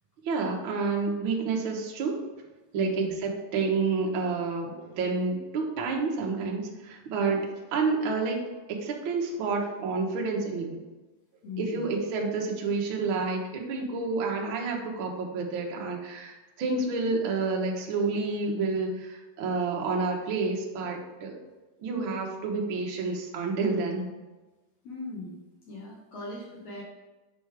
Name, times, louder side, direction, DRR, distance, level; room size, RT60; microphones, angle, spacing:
voice 1, 0.2-2.2 2.7-7.4 7.7-10.8 11.6-21.4 21.8-24.1, right 4 dB, 80° right, 0 dB, 1.1 m, -29 dB
voice 2, 2.7-3.2 7.3-7.4 11.4-12.0 24.8-25.4 25.7-26.8, left 3 dB, 60° left, -5 dB, 2.0 m, -39 dB
8.0 x 5.6 x 3.5 m, 1.2 s
omnidirectional pair, 4.0 m